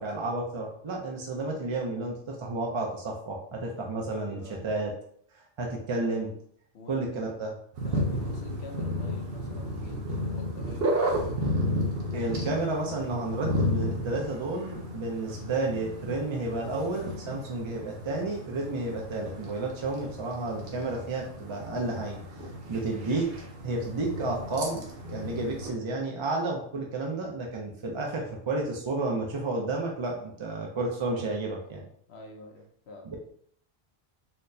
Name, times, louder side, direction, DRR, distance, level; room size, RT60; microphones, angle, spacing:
voice 1, 0.0-4.9 5.3-6.3 6.9-7.6 12.1-22.2 22.7-23.3 23.6-31.8 33.1-33.2, right 2 dB, 45° right, 0 dB, 0.4 m, -31 dB
voice 2, 4.1-4.7 6.7-7.3 7.8-11.0 32.1-33.1, left 2 dB, 80° left, 1 dB, 0.9 m, -47 dB
sound 1, 7.7-25.7, equal, 65° right, 0.9 m, -33 dB
4.2 x 2.0 x 2.6 m, 0.64 s
omnidirectional pair, 1.1 m